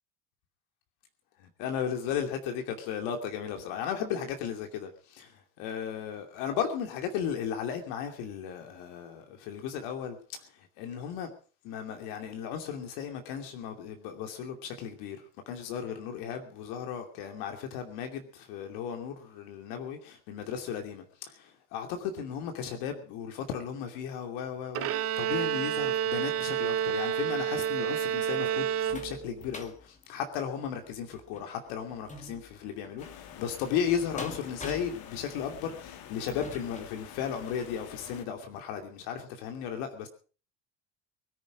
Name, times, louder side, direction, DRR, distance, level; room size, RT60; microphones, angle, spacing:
voice 1, 1.4-10.4 10.8-11.3 11.6-15.2 15.5-40.1, left 8 dB, 80° left, 2.8 m, -35 dB
Bowed string instrument, 24.7-29.5, right 9 dB, 35° right, 0.7 m, -29 dB
sound 1, 28.0-37.8 38.3-38.5 38.8-38.9, left 3 dB, 15° left, 1.8 m, -47 dB
sound 2, 33.0-38.2, left 10 dB, 60° left, 2.1 m, -48 dB
23.0 x 10.5 x 5.0 m
cardioid pair, 160°, 42 cm